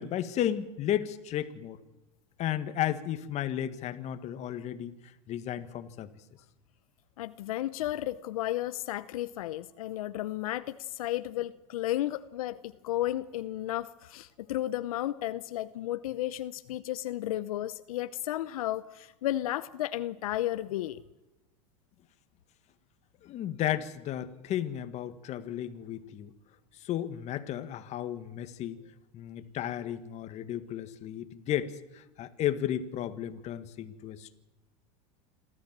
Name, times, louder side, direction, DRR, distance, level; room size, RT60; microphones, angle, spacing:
voice 1, 0.0-1.8 2.4-4.9 5.3-6.1 23.2-26.3 26.8-28.8 29.1-34.4, left 11 dB, 40° left, 10 dB, 1.7 m, -33 dB
voice 2, 7.2-21.0, left 14 dB, 85° left, 13 dB, 0.8 m, -33 dB
27.0 x 14.0 x 7.5 m, 1.0 s
supercardioid pair, 125°, 18 cm